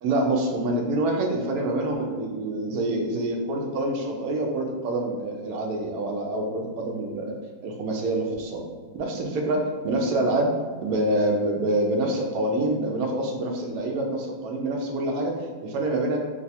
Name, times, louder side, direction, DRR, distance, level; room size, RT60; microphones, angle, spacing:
voice 1, 0.0-7.3 7.6-8.6 8.9-10.5 10.8-16.2, right 1 dB, 75° right, 1 dB, 1.0 m, -26 dB
2.8 x 2.3 x 4.1 m, 1.5 s
omnidirectional pair, 1.7 m